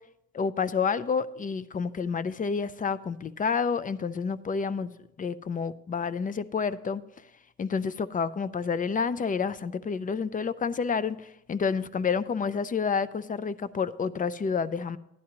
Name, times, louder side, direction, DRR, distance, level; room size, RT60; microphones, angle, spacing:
voice 1, 0.3-4.9 5.2-7.0 7.6-15.0, left 5 dB, 30° left, 17 dB, 0.4 m, -29 dB
11.5 x 10.5 x 2.9 m, 0.81 s
cardioid pair, 90°, 30 cm